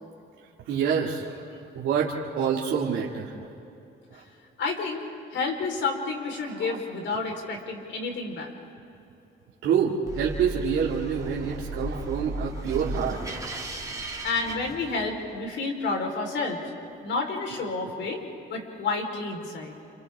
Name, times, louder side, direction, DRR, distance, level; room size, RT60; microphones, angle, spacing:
voice 1, 0.7-1.4 1.7-3.3 4.1-4.2 6.4-6.8 9.6-13.2, right 7 dB, 90° right, -5 dB, 2.3 m, -27 dB
voice 2, 4.6-5.0 5.3-8.5 14.2-16.6 17.0-18.2 18.5-19.8, left 3 dB, 70° left, 2 dB, 4.2 m, -30 dB
sound 1, 10.1-15.4, right 1 dB, 15° right, 2.4 m, -35 dB
29.5 x 29.5 x 3.6 m, 2.8 s
cardioid pair, 90°, 20 cm